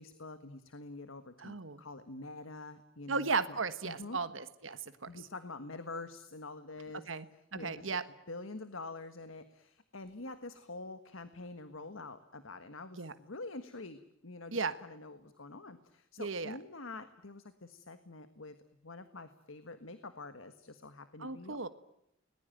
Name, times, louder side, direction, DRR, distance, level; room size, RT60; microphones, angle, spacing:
voice 1, 0.0-4.2 5.1-7.9 8.3-18.6 18.8-21.6, left 3 dB, 85° left, 10 dB, 1.6 m, -46 dB
voice 2, 1.4-1.8 3.1-5.1 7.1-7.3 7.5-8.0 13.0-13.1 14.5-14.7 16.2-16.6 21.2-21.7, right 4 dB, 75° right, 11 dB, 1.5 m, -35 dB
30.0 x 20.5 x 9.2 m, 0.80 s
head